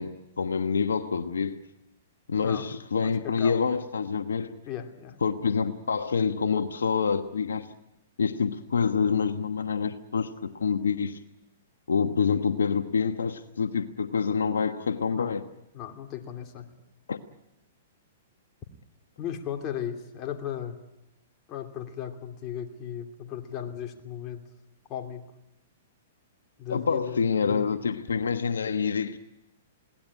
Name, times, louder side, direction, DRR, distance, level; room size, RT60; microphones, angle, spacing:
voice 1, 0.0-1.6 2.3-4.6 5.2-7.7 8.2-11.2 11.9-15.4 17.1-17.2 26.7-29.2, left 5 dB, 90° left, 1.2 m, -27 dB
voice 2, 3.0-3.6 4.7-5.2 15.1-15.3 15.7-16.7 19.2-20.8 21.5-24.4 24.9-25.3 26.6-27.8, left 9 dB, 35° left, 2.8 m, -36 dB
21.5 x 18.0 x 9.9 m
hypercardioid pair, 130°, 0 cm